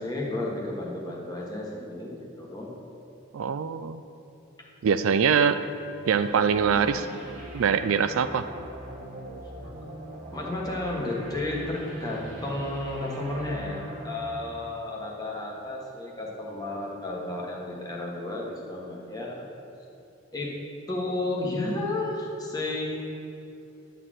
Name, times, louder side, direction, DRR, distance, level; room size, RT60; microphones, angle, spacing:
voice 1, 0.0-2.7 6.6-6.9 10.3-19.4 20.3-20.5 20.9-23.0, left 2 dB, 20° left, -3 dB, 1.4 m, -32 dB
voice 2, 3.3-4.0 4.8-5.5 6.1-7.1 7.5-8.4, right 6 dB, 70° right, 11 dB, 0.4 m, -23 dB
sound 1, 6.1-15.2, right 1 dB, 40° right, 1.4 m, -42 dB
11.0 x 4.2 x 7.6 m, 2.8 s
head